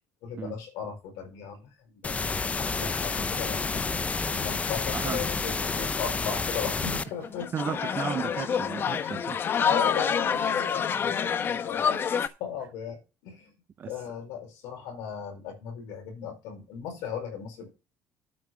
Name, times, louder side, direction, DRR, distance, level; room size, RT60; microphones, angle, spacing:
voice 1, 0.2-3.9 4.3-7.6 9.6-13.5 13.8-17.7, left 7 dB, 75° left, 4.8 m, -37 dB
sound 1, 2.0-7.0, left 4 dB, 25° left, 0.8 m, -29 dB
voice 2, 4.9-5.3 7.5-9.4 13.8-13.9, right 7 dB, 40° right, 0.7 m, -34 dB
sound 2, 7.1-12.3, left 7 dB, 45° left, 1.0 m, -27 dB
8.6 x 6.7 x 6.2 m
supercardioid pair, 80°, 5 cm